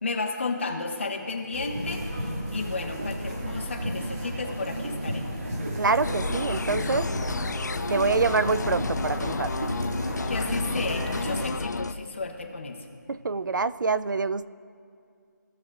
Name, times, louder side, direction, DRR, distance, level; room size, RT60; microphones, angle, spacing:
voice 1, 0.0-5.3 10.3-12.8, left 3 dB, 40° left, 1 dB, 1.1 m, -33 dB
sound 1, 1.2-6.9, right 2 dB, 20° right, 1.0 m, -53 dB
sound 2, 1.5-11.5, equal, 45° right, 2.0 m, -32 dB
voice 2, 5.8-7.1 7.9-9.5 13.1-14.5, right 4 dB, 75° right, 14 dB, 0.4 m, -26 dB
sound 3, 6.0-11.9, left 4 dB, 60° left, 0.4 m, -32 dB
17.5 x 6.3 x 2.4 m, 2.3 s
figure-of-eight pair, 175°, 10 cm